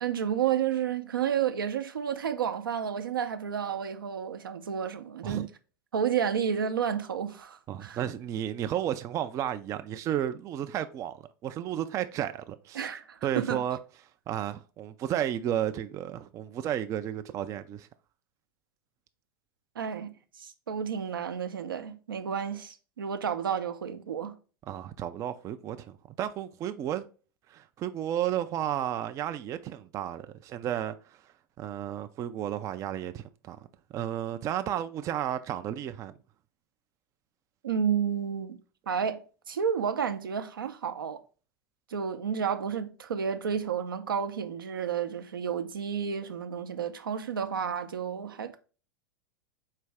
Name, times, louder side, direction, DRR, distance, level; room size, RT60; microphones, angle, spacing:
voice 1, 0.0-5.5 5.9-8.0 12.7-13.6 19.8-20.1 20.4-24.3 37.6-38.6 38.9-41.2 41.9-48.6, right 8 dB, 75° right, 0.6 m, -31 dB
voice 2, 7.7-12.9 13.2-13.8 14.3-17.9 24.7-27.0 27.5-31.3 31.6-33.7 33.9-36.1, right 11 dB, 25° right, 0.3 m, -33 dB
4.6 x 3.3 x 3.3 m
figure-of-eight pair, 90°, 12 cm